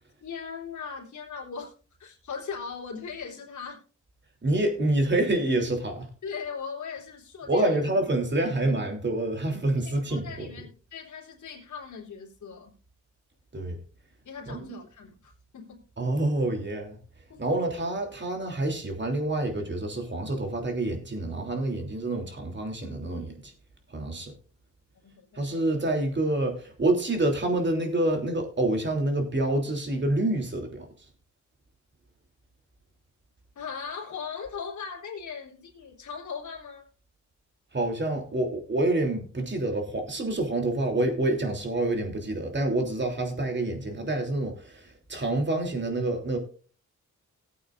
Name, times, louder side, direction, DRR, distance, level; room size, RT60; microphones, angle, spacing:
voice 1, 0.2-1.7 2.0-3.8 6.2-7.9 8.4-8.7 9.8-12.7 14.2-15.8 17.3-17.6 25.0-25.7 33.6-36.9, left 6 dB, 70° left, 3.9 m, -39 dB
voice 2, 4.4-6.1 7.5-10.5 13.5-13.8 14.5-14.8 16.0-17.0 17.4-23.5 23.9-24.3 25.3-30.8 37.7-46.4, right 2 dB, 35° right, 3.2 m, -27 dB
18.5 x 8.4 x 2.5 m
cardioid pair, 85°, 31 cm